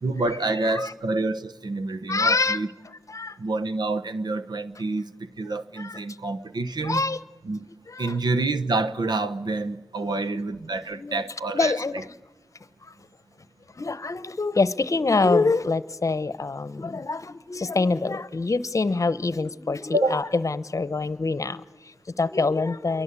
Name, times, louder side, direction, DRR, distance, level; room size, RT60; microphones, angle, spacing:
voice 1, 0.0-2.7 3.4-5.1 5.4-7.0 7.4-7.7 8.0-12.0 19.9-20.2, right 2 dB, 75° right, 1.1 m, -27 dB
voice 2, 2.1-2.6 3.1-3.4 5.8-6.0 6.8-7.2 7.9-8.2 10.0-10.4 10.9-11.2 11.5-12.1 12.8-12.9 13.7-23.0, left 3 dB, 50° left, 0.9 m, -25 dB
28.0 x 23.0 x 8.3 m
wide cardioid pair, 60°, 7 cm